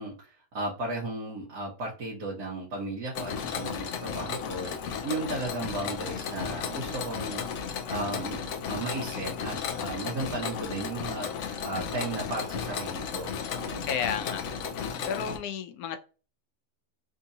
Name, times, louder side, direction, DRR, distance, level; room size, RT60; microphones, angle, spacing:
voice 1, 0.0-7.4 7.9-8.4 8.7-11.3 11.6-13.3 13.6-13.9, right 2 dB, 90° right, 1.6 m, -35 dB
Mechanisms, 3.1-15.4, left 6 dB, 65° left, 0.8 m, -34 dB
voice 2, 13.9-14.4 15.1-16.0, left 7 dB, 85° left, 1.1 m, -31 dB
3.7 x 2.7 x 2.7 m
omnidirectional pair, 1.6 m